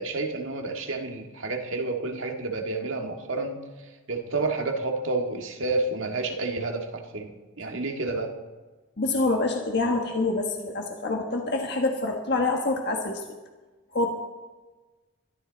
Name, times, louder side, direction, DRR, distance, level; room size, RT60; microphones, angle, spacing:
voice 1, 0.0-3.6 4.1-7.3 7.6-8.3, right 3 dB, 75° right, 3 dB, 1.9 m, -30 dB
voice 2, 9.0-13.2 13.9-14.1, left 2 dB, 55° left, 2 dB, 1.5 m, -26 dB
21.5 x 13.5 x 4.0 m, 1.2 s
head